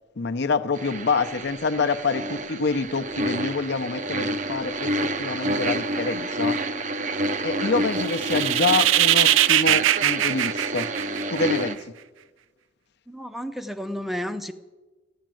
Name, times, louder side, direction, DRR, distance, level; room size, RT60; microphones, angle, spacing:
voice 1, 0.2-6.6 7.4-10.9 11.3-12.0, left 4 dB, 60° left, 0.7 m, -26 dB
sound 1, 0.7-11.7, right 1 dB, 40° right, 0.6 m, -29 dB
sound 2, 8.0-11.6, right 13 dB, 80° right, 0.4 m, -21 dB
voice 2, 13.1-14.5, equal, ahead, 0.6 m, -32 dB
13.5 x 10.5 x 7.6 m
head